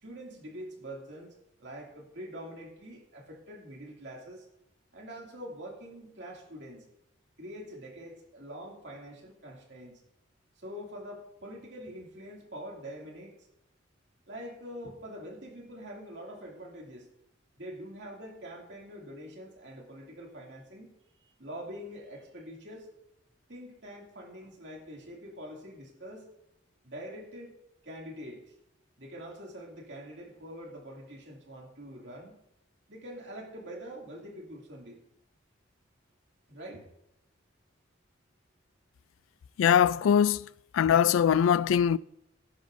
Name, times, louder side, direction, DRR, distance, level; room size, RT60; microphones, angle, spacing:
voice 1, 0.0-1.3 1.6-4.4 4.9-6.9 7.4-10.0 10.6-13.4 14.3-17.1 17.6-20.9 21.4-22.9 23.5-26.3 26.8-27.6 27.8-28.4 29.0-32.4 32.9-35.0 36.5-36.8, equal, 60° right, 2.5 m, -44 dB
voice 2, 39.6-40.4 40.7-42.0, left 8 dB, 90° left, 0.3 m, -22 dB
17.5 x 10.0 x 2.6 m
head